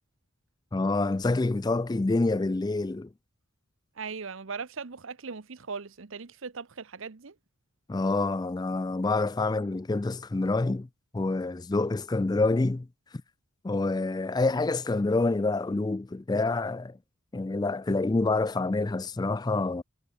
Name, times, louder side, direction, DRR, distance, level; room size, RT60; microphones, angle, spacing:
voice 1, 0.7-3.1 7.9-10.9 11.1-12.9 13.6-17.0 17.3-19.8, left 3 dB, 20° left, 0.3 m, -27 dB
voice 2, 4.0-7.4, right 5 dB, 65° right, 0.8 m, -39 dB
head